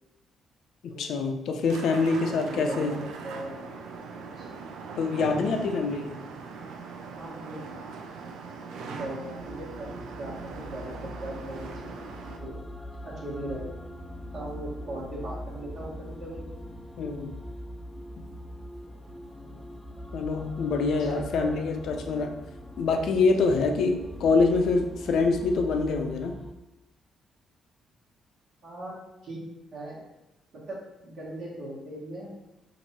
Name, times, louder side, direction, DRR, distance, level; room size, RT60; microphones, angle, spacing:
voice 1, 0.8-2.9 5.0-6.2 17.0-17.3 20.1-22.3 22.8-26.4, left 4 dB, 70° left, 5 dB, 0.4 m, -25 dB
sound 1, 1.7-12.4, right 4 dB, 85° right, 0.4 m, -40 dB
voice 2, 2.4-3.5 4.3-4.5 7.1-7.6 8.8-9.9 10.2-12.0 12.4-12.6 13.0-13.6 14.3-16.5 18.8-19.0 21.0-21.5 28.6-28.9 29.2-29.4 29.7-30.0 30.5-32.3, right 1 dB, 60° right, -5 dB, 1.3 m, -39 dB
sound 2, 9.4-26.5, equal, 5° left, 0.4 m, -41 dB
2.9 x 2.6 x 4.2 m, 0.92 s
cardioid pair, 90°, 0 cm